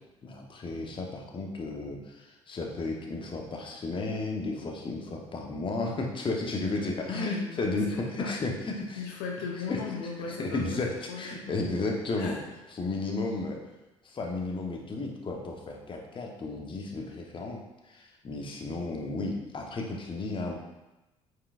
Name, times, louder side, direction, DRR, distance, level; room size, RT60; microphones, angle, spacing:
voice 1, 0.2-9.0 9.7-9.8 10.2-12.4 12.7-13.6 14.0-17.6 17.9-20.5, left 3 dB, 30° left, 1 dB, 1.1 m, -33 dB
voice 2, 7.1-8.3 9.0-11.6 12.2-12.4, left 5 dB, 65° left, 0 dB, 1.0 m, -38 dB
8.6 x 4.8 x 2.5 m, 1.0 s
figure-of-eight pair, 55°, 17 cm